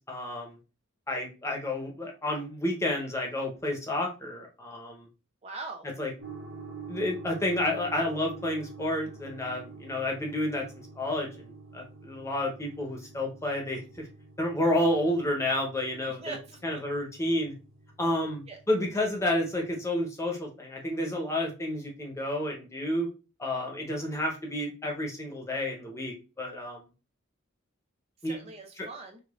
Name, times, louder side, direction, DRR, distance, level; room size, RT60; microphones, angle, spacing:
voice 1, 0.1-0.6 1.1-5.1 6.0-6.1 6.9-10.6 11.0-14.0 14.4-16.3 16.6-17.5 18.0-23.1 23.4-26.8 28.2-28.4 28.8-28.9, left 1 dB, 15° left, 0 dB, 0.8 m, -30 dB
voice 2, 5.4-5.9 16.1-16.8 18.5-18.6 28.2-29.2, right 3 dB, 30° right, 3 dB, 0.4 m, -42 dB
sound 1, 6.2-19.9, right 4 dB, 85° right, 1.5 m, -47 dB
4.9 x 2.4 x 2.4 m, 0.32 s
head